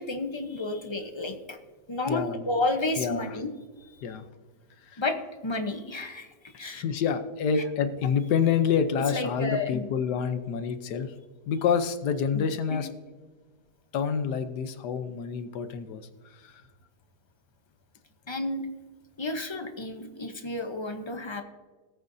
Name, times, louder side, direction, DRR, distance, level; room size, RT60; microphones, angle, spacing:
voice 1, 0.0-1.6 1.9-3.5 3.8-3.9 5.0-5.2 5.4-6.8 7.6-7.7 9.1-9.9 12.3-12.8 18.3-18.7 19.2-21.4, left 2 dB, 30° left, 6 dB, 0.5 m, -31 dB
voice 2, 2.1-2.4 3.0-3.3 4.0-4.2 4.8-5.0 6.5-11.1 11.5-12.9 13.9-16.1 16.4-16.5, left 7 dB, 75° left, 10 dB, 1.4 m, -27 dB
18.0 x 8.6 x 2.7 m, 1.4 s
omnidirectional pair, 1.8 m